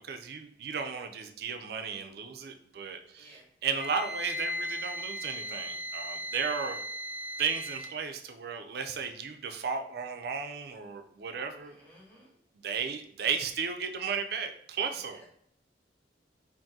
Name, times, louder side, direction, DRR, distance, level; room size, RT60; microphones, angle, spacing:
voice 1, 0.0-6.8 7.4-11.7 12.6-15.2, right 6 dB, 60° right, 6 dB, 0.4 m, -34 dB
voice 2, 3.2-3.5 11.6-12.3 15.0-15.2, equal, 10° left, -6 dB, 1.1 m, -57 dB
Wind instrument woodwind instrument, 3.8-8.0, equal, 65° left, 1.3 m, -37 dB
2.7 x 2.5 x 3.6 m, 0.68 s
head